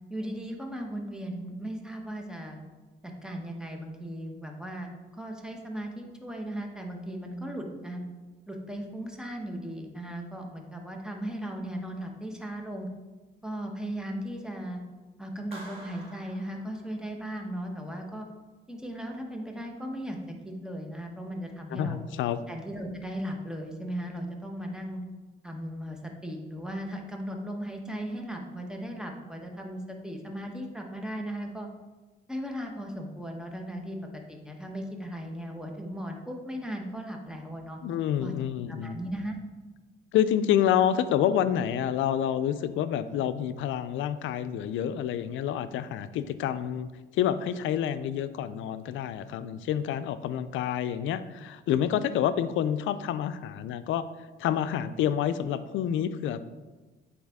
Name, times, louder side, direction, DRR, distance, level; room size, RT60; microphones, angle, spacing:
voice 1, 0.1-2.6 3.0-8.0 8.5-12.9 13.4-14.8 15.2-18.3 18.7-22.0 22.5-25.0 25.4-31.7 32.3-37.8 38.2-38.3 38.7-39.4, equal, 5° right, 2 dB, 1.1 m, -37 dB
Clapping, 15.5-17.4, right 1 dB, 30° right, 2.1 m, -48 dB
voice 2, 21.7-22.4 37.8-39.0 40.1-54.1 54.4-56.4, left 10 dB, 80° left, 13 dB, 0.4 m, -28 dB
8.7 x 4.1 x 3.5 m, 1.2 s
cardioid pair, 90°, 20 cm